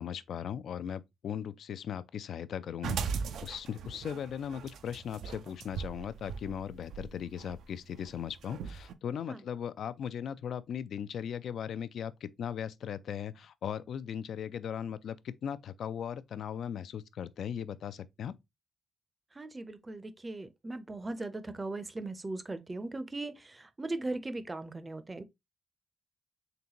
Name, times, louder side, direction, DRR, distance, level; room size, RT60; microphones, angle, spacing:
voice 1, 0.0-18.3, left 8 dB, 75° left, 0.3 m, -38 dB
sound 1, 2.8-8.9, right 6 dB, 85° right, 0.4 m, -39 dB
voice 2, 19.4-25.2, right 2 dB, 20° right, 0.5 m, -38 dB
3.9 x 3.4 x 2.8 m
cardioid pair, 105°, 0 cm